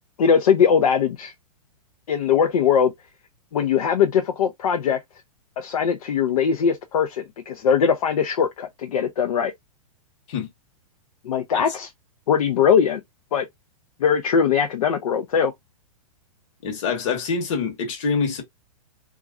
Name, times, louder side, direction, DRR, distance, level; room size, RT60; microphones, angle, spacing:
voice 1, 0.2-1.3 2.1-2.9 3.5-5.0 5.6-9.5 11.2-11.9 12.3-13.0 13.3-13.5 14.0-15.5, left 7 dB, 75° left, 0.5 m, -20 dB
voice 2, 16.6-18.4, left 5 dB, 55° left, 1.1 m, -25 dB
3.0 x 2.4 x 2.3 m
hypercardioid pair, 120°, 19 cm